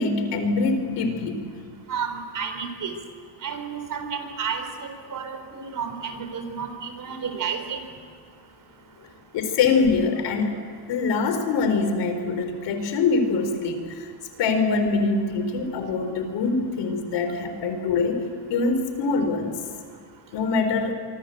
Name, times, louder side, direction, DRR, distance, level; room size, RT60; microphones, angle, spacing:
voice 1, 0.0-1.4 9.3-10.5 10.9-14.1 14.4-18.2 18.5-19.6 20.3-20.9, left 4 dB, 75° left, 7 dB, 4.3 m, -24 dB
voice 2, 1.9-2.9 3.4-7.8, right 6 dB, 45° right, 7 dB, 4.3 m, -31 dB
25.5 x 24.0 x 8.0 m, 2.1 s
cardioid pair, 125°, 42 cm